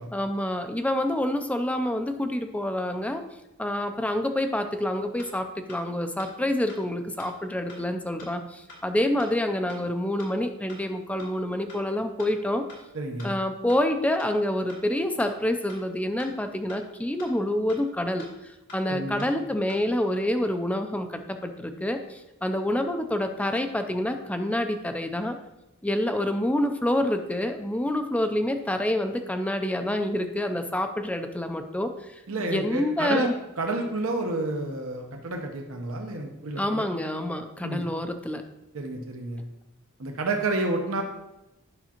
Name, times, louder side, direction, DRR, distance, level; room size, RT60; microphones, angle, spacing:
voice 1, 0.1-3.2 3.6-12.7 13.2-25.4 25.8-33.3 36.6-38.4, left 1 dB, 5° left, 7 dB, 0.4 m, -27 dB
sound 1, 4.7-4.8 5.2-5.3 5.7-5.8 6.2-6.3 6.7-6.8 7.2-7.3 7.7-7.8 8.2-8.3 8.7-8.8 9.2-9.3 9.7-9.8 10.2-10.3 10.7-10.8 11.2-11.3 11.7-11.8 12.2-12.3 12.7-12.8 13.2-13.3 13.7-13.8 14.2-14.3 14.7-14.8 15.2-15.3 15.7-15.8 16.2-16.3 16.7-16.8 17.2-17.3 17.7-17.8 18.2-18.3 18.7-18.8 19.2-19.3 19.7-19.8, left 2 dB, 90° left, 2.7 m, -46 dB
voice 2, 12.9-13.3 18.9-19.3 32.3-33.3 33.6-36.8 37.6-37.8 38.7-39.4 40.0-41.0, right 2 dB, 75° right, 2 dB, 0.9 m, -30 dB
9.7 x 5.9 x 2.9 m, 0.94 s
head